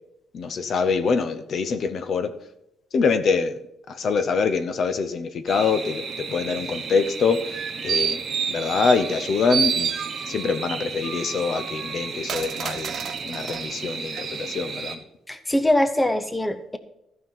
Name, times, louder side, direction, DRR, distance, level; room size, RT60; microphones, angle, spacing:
voice 1, 0.3-2.3 2.9-3.6 3.9-9.9 10.3-12.9 13.3-15.0, left 5 dB, 55° left, 10 dB, 0.8 m, -24 dB
sound 1, 5.5-15.0, right 5 dB, 45° right, 1.4 m, -34 dB
sound 2, 7.3-9.2 9.5-10.5 11.0-13.6 14.1-14.2, right 7 dB, 60° right, 0.6 m, -29 dB
voice 2, 15.3-16.8, left 1 dB, 10° left, 10 dB, 0.7 m, -22 dB
13.5 x 5.7 x 5.5 m, 0.83 s
cardioid pair, 115°, 0 cm